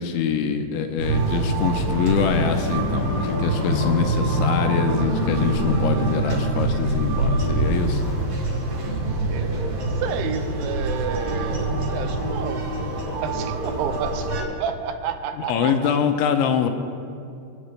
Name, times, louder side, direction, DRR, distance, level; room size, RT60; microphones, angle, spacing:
voice 1, 0.0-8.0 15.4-16.7, left 7 dB, 85° left, 6 dB, 3.0 m, -24 dB
sound 1, 1.0-14.4, right 1 dB, 50° right, 3.6 m, -24 dB
voice 2, 9.3-12.7 13.2-15.9, right 6 dB, 80° right, 7 dB, 3.1 m, -30 dB
24.5 x 9.4 x 3.2 m, 2.5 s
omnidirectional pair, 5.5 m